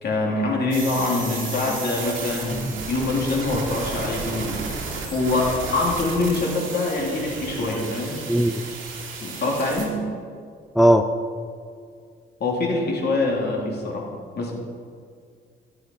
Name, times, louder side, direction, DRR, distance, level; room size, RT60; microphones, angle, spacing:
voice 1, 0.0-4.7 5.1-8.2 9.2-10.0 12.4-14.1 14.4-14.5, left 2 dB, 55° left, -2 dB, 3.1 m, -24 dB
sound 1, 0.7-9.9, right 4 dB, 85° right, 2.6 m, -33 dB
voice 2, 8.3-8.6 10.8-11.1, equal, ahead, 8 dB, 0.5 m, -18 dB
12.5 x 8.9 x 5.4 m, 2.2 s
cardioid pair, 90°, 20 cm